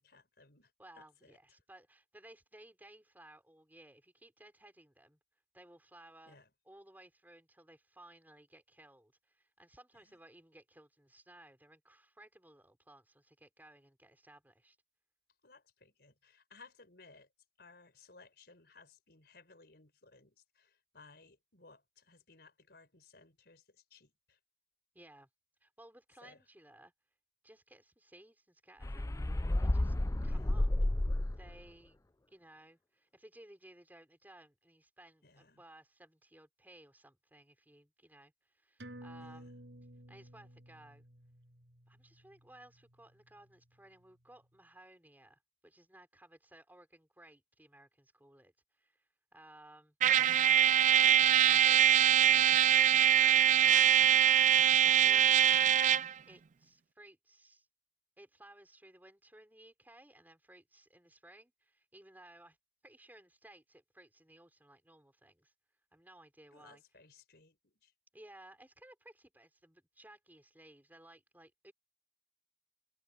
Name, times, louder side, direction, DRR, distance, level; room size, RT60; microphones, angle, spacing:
voice 1, 0.0-1.4 6.3-6.5 9.9-10.2 15.4-17.3 17.6-24.4 26.2-26.4 30.3-30.7 35.2-35.6 39.2-39.5 66.5-67.9, left 3 dB, 65° left, 6.0 m, -61 dB
voice 2, 0.8-5.2 5.5-6.4 6.6-14.8 24.9-25.3 25.6-26.9 27.4-29.1 29.6-29.9 30.2-30.9 31.4-32.0 32.3-39.5 40.1-41.0 41.9-50.0 50.9-52.9 53.2-55.6 56.3-57.7 58.2-62.6 62.8-65.5 65.9-66.8 68.1-71.7, right 1 dB, 10° right, 6.1 m, -59 dB
sound 1, 28.8-31.6, left 1 dB, 20° left, 0.5 m, -31 dB
sound 2, 38.8-43.7 44.1-44.2, right 1 dB, 85° right, 7.3 m, -54 dB
Trumpet, 50.0-56.1, right 10 dB, 45° right, 0.4 m, -24 dB
head